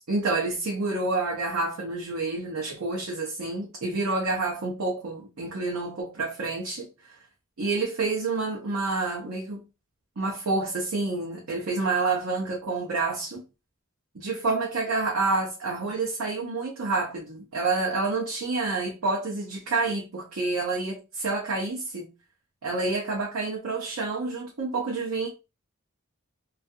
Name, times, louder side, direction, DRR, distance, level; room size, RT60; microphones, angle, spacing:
voice 1, 0.1-7.2 7.6-9.6 10.2-13.4 14.1-22.1 22.6-25.3, right 3 dB, 75° right, 0.7 m, -28 dB
2.6 x 2.4 x 2.3 m
head